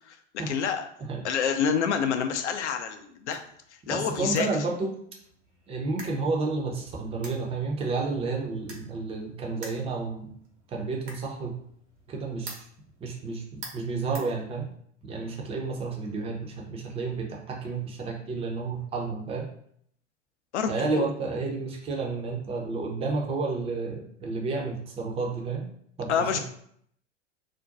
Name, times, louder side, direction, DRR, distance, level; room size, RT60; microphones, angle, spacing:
voice 1, 0.5-0.9 1.2-3.4 3.9-4.5 20.5-21.1 26.1-26.4, left 7 dB, 70° left, 7 dB, 0.5 m, -27 dB
sound 1, 2.7-15.0, right 3 dB, 65° right, 0.9 m, -49 dB
voice 2, 3.9-5.0 5.7-10.3 10.7-11.6 12.1-12.6 13.0-14.7 15.0-19.5 20.7-25.7 26.0-26.4, right 3 dB, 15° right, 0 dB, 0.5 m, -31 dB
2.5 x 2.2 x 3.8 m, 0.66 s
figure-of-eight pair, 85°, 36 cm